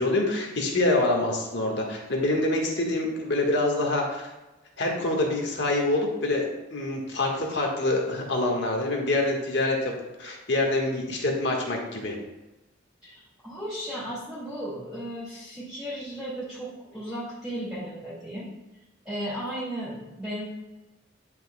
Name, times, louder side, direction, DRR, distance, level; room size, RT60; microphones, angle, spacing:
voice 1, 0.0-4.3 4.8-9.9 10.2-12.2, left 2 dB, 60° left, 0 dB, 1.6 m, -26 dB
voice 2, 13.0-18.5 19.0-20.4, equal, 5° right, -11 dB, 2.1 m, -35 dB
10.0 x 6.1 x 2.3 m, 1.0 s
head